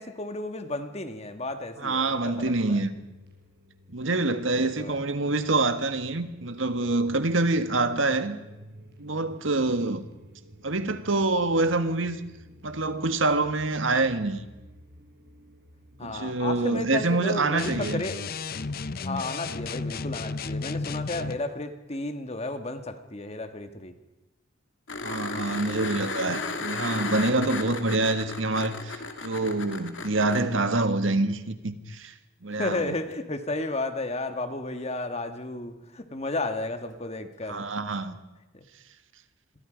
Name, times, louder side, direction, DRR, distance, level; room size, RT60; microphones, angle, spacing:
voice 1, 0.0-2.8 4.6-5.0 16.0-18.2 19.0-23.9 32.6-37.6 38.5-38.6, left 2 dB, 30° left, 1.6 m, -33 dB
voice 2, 1.8-2.9 3.9-8.4 9.0-10.1 10.6-12.2 12.6-14.4 16.0-18.0 25.0-32.1 32.4-32.9 37.5-38.2, right 2 dB, 75° right, 1.7 m, -26 dB
sound 1, 2.0-17.9, equal, 55° right, 5.1 m, -52 dB
sound 2, 17.6-21.4, left 4 dB, 50° left, 0.7 m, -33 dB
sound 3, 24.9-30.4 33.1-33.2, left 4 dB, 70° left, 2.5 m, -34 dB
28.0 x 22.5 x 5.2 m
head